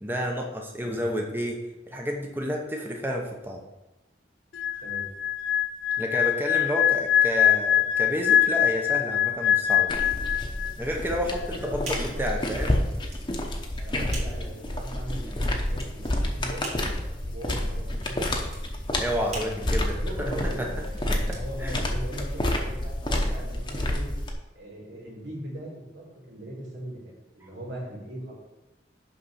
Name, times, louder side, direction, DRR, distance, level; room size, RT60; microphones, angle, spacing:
voice 1, 0.0-1.6 1.9-3.6 6.0-9.9 10.8-12.7 19.0-20.3 20.6-20.7 21.1-21.8, equal, 10° right, 1 dB, 0.7 m, -30 dB
sound 1, 4.5-10.9 11.2-11.5, left 10 dB, 90° left, 0.5 m, -23 dB
sound 2, 9.9-24.3, left 1 dB, 25° left, 0.9 m, -29 dB
voice 2, 11.4-12.8 13.8-16.9 17.2-18.2 19.2-24.1 24.5-28.3, right 1 dB, 85° right, -3 dB, 2.9 m, -39 dB
sound 3, 11.8-22.3, right 3 dB, 40° right, 1.8 m, -45 dB
6.5 x 5.5 x 5.6 m, 0.98 s
head